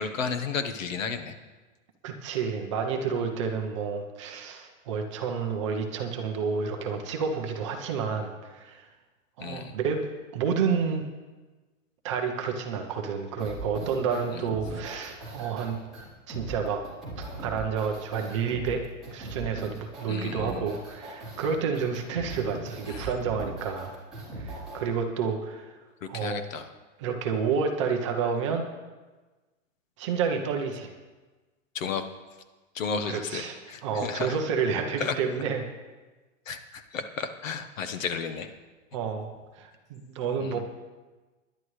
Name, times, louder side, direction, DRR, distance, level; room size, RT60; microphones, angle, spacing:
voice 1, 0.0-1.4 9.4-9.7 14.3-14.5 20.1-20.7 22.9-23.1 26.0-26.7 31.7-32.0 32.7-34.4 35.0-35.2 36.5-38.5 40.4-40.6, left 5 dB, 75° left, 8 dB, 1.3 m, -33 dB
voice 2, 2.0-8.9 9.4-10.1 10.3-11.1 12.0-15.8 16.3-16.8 17.2-18.8 19.1-23.9 24.4-25.7 26.1-26.5 27.0-28.7 30.0-30.9 33.1-33.6 33.8-35.7 38.9-39.3 39.6-40.6, right 6 dB, 25° right, 3 dB, 0.8 m, -30 dB
sound 1, 13.4-24.8, right 2 dB, ahead, 4.1 m, -39 dB
19.5 x 11.0 x 3.3 m, 1.2 s
supercardioid pair, 175°, 39 cm